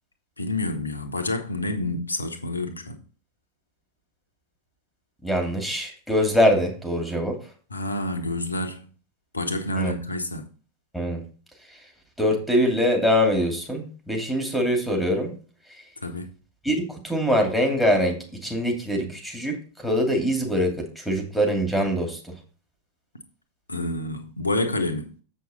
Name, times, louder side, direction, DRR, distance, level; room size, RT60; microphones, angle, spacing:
voice 1, 0.4-3.0 7.7-8.8 9.3-10.4 16.0-16.3 23.7-25.1, left 2 dB, 80° left, 1.3 m, -28 dB
voice 2, 5.2-7.4 9.8-9.9 10.9-11.2 12.2-15.3 16.6-22.3, equal, ahead, 2.6 m, -23 dB
7.5 x 6.5 x 4.2 m
figure-of-eight pair, 90°, 0 cm